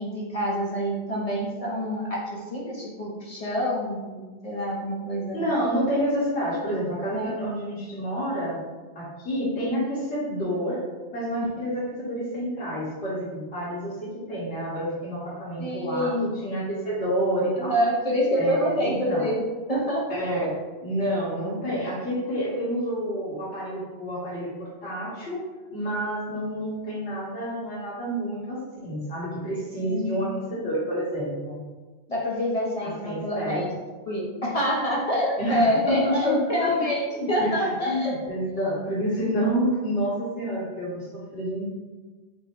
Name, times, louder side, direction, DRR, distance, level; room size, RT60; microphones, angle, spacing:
voice 1, 0.0-5.4 7.1-7.3 15.6-16.3 17.6-19.4 19.7-20.1 29.8-30.4 32.1-33.7 34.1-38.2, equal, 40° left, -4 dB, 0.7 m, -26 dB
voice 2, 5.3-8.6 9.0-10.8 11.1-17.7 18.3-19.3 20.1-20.6 20.8-25.4 25.7-31.6 32.8-33.7 35.4-41.6, equal, 75° left, -13 dB, 1.9 m, -29 dB
4.4 x 2.1 x 4.4 m, 1.3 s
omnidirectional pair, 1.1 m